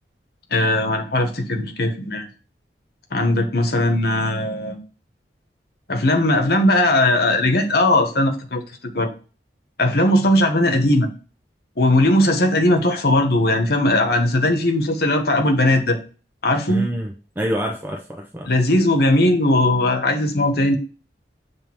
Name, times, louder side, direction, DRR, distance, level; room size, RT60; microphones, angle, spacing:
voice 1, 0.5-2.3 3.1-4.8 5.9-8.6 8.9-9.1 9.8-11.1 11.8-16.0 16.4-16.8 18.4-20.8, left 1 dB, 60° left, 5 dB, 1.2 m, -18 dB
voice 2, 16.7-18.5, equal, 10° right, 2 dB, 0.6 m, -27 dB
7.5 x 3.5 x 4.4 m, 0.36 s
head